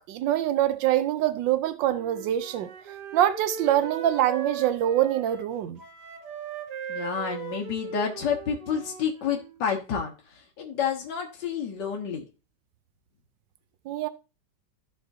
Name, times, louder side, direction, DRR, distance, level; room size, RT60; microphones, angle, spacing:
voice 1, 0.0-2.7 3.1-5.8 13.9-14.1, right 12 dB, 85° right, 1.3 m, -24 dB
Wind instrument woodwind instrument, 1.9-9.6, right 6 dB, 70° right, 1.7 m, -39 dB
voice 2, 6.9-12.2, left 7 dB, 75° left, 1.9 m, -29 dB
14.5 x 5.2 x 2.7 m
omnidirectional pair, 1.9 m